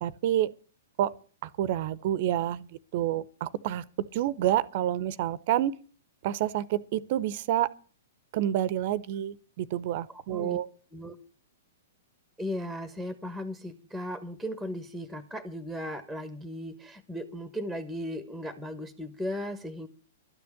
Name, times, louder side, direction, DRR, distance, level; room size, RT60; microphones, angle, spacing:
voice 1, 0.0-0.5 1.0-1.1 1.4-2.7 2.9-3.8 4.1-5.7 6.2-7.7 8.3-10.7, right 12 dB, 45° right, 0.7 m, -28 dB
voice 2, 10.1-10.6 10.9-11.1 12.4-19.9, equal, 5° left, 1.2 m, -36 dB
12.5 x 6.9 x 9.7 m
figure-of-eight pair, 110°, 0 cm